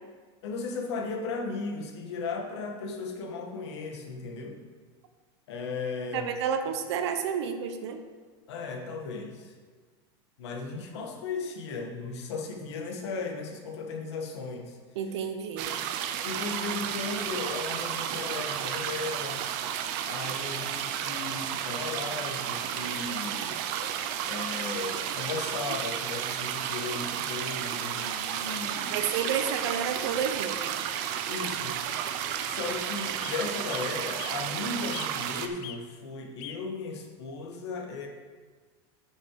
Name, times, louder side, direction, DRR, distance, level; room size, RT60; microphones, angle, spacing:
voice 1, 0.4-4.6 5.5-6.3 8.5-9.5 10.4-14.8 16.2-19.4 20.1-23.6 24.2-29.0 31.3-31.8 32.1-38.1, left 4 dB, 85° left, 2 dB, 1.8 m, -36 dB
voice 2, 6.1-8.0 15.0-15.7 28.9-30.8, right 7 dB, 80° right, 7 dB, 1.1 m, -30 dB
sound 1, 15.6-35.5, right 9 dB, 45° right, 0.6 m, -32 dB
sound 2, 23.9-24.7 25.8-25.9 26.2-26.3 26.9-27.2 27.5-27.6 27.9-28.1 28.5-28.7 29.6-29.7 30.1-30.2 31.3-31.4 31.7-32.1 32.6-32.7 33.2-33.4 33.7-34.4 34.9-35.3 35.6-35.8 36.4-36.6 37.3-37.4, left 11 dB, 40° left, 0.5 m, -43 dB
9.6 x 6.6 x 4.9 m, 1.5 s
supercardioid pair, 175°, 14 cm